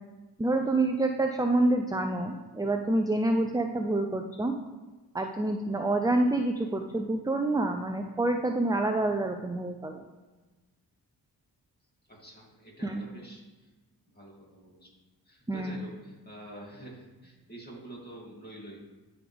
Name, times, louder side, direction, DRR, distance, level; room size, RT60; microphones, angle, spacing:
voice 1, 0.4-4.5 5.1-10.0 12.8-13.0 15.5-15.8, right 2 dB, 10° right, 4 dB, 0.5 m, -27 dB
voice 2, 12.1-13.7 14.1-14.9 15.3-18.8, right 1 dB, 25° left, -4 dB, 2.9 m, -47 dB
12.0 x 5.0 x 3.5 m, 1.2 s
cardioid pair, 60°, 40 cm